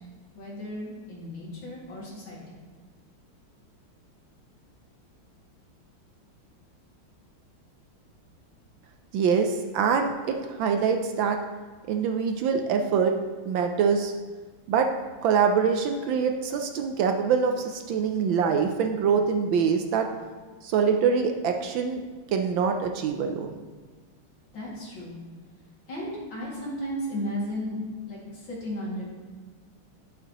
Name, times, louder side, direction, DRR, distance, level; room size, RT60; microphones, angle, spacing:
voice 1, 0.3-2.4 24.5-25.2 25.9-27.8 28.1-29.0, equal, 65° left, -6 dB, 3.0 m, -34 dB
voice 2, 9.1-11.4 11.9-13.1 13.5-14.1 14.7-14.9 15.2-20.1 20.6-22.0 22.3-23.5, right 6 dB, 75° right, 5 dB, 1.2 m, -24 dB
11.0 x 6.8 x 3.0 m, 1.4 s
omnidirectional pair, 2.3 m